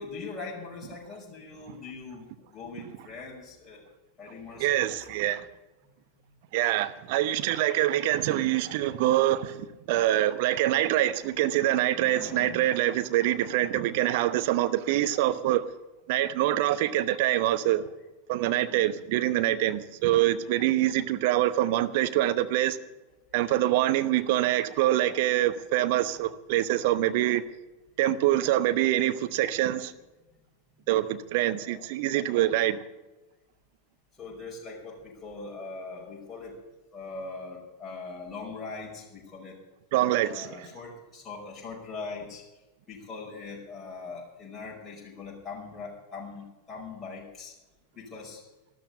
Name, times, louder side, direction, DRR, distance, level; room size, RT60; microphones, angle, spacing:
voice 1, 0.0-3.8 4.2-5.1 11.9-12.6 18.6-19.1 31.7-32.0 34.2-36.6 36.9-39.6 40.3-42.4 42.9-47.5 48.0-48.4, left 4 dB, 15° left, 5.6 m, -41 dB
voice 2, 4.6-5.4 6.5-15.6 16.1-17.8 18.3-22.8 23.3-27.4 28.0-29.9 30.9-32.8 39.9-40.7, right 14 dB, 50° right, 1.0 m, -25 dB
13.0 x 13.0 x 6.9 m
figure-of-eight pair, 90°, 0 cm